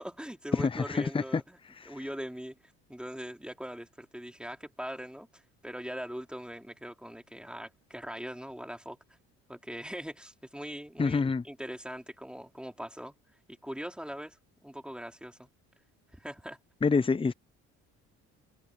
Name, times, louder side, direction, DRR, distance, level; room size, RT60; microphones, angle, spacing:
voice 1, 0.0-1.6 1.9-9.0 9.5-13.2 13.6-15.5 16.1-16.6, equal, 5° right, 4.5 m, -41 dB
voice 2, 0.5-1.2 1.8-2.0 11.0-11.4 16.8-17.3, left 4 dB, 15° left, 0.6 m, -27 dB
supercardioid pair, 65°, 34 cm